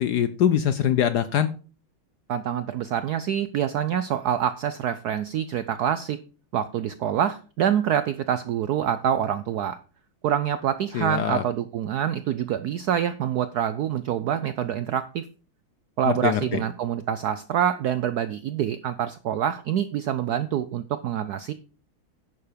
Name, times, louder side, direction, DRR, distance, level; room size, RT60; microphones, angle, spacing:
voice 1, 0.0-1.5 10.9-11.4 16.1-16.6, left 9 dB, 70° left, 13 dB, 1.0 m, -23 dB
voice 2, 2.3-6.2 6.5-9.8 10.2-15.2 16.0-21.5, right 9 dB, 75° right, 13 dB, 0.9 m, -26 dB
10.5 x 6.8 x 5.1 m, 0.37 s
omnidirectional pair, 2.3 m